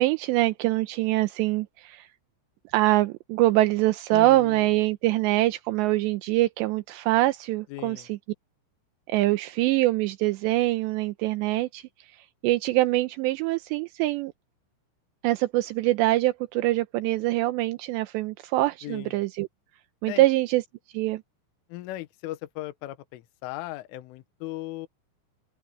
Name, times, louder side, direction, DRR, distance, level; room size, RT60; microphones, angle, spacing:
voice 1, 0.0-2.1 2.7-8.2 9.1-11.8 12.4-14.3 15.2-19.5 20.0-20.6 20.9-21.2, right 17 dB, 80° right, 2.6 m, -24 dB
voice 2, 4.1-4.7 7.7-8.1 18.8-19.2 20.1-20.3 21.7-24.9, left 16 dB, 80° left, 3.6 m, -37 dB
open air
omnidirectional pair, 5.8 m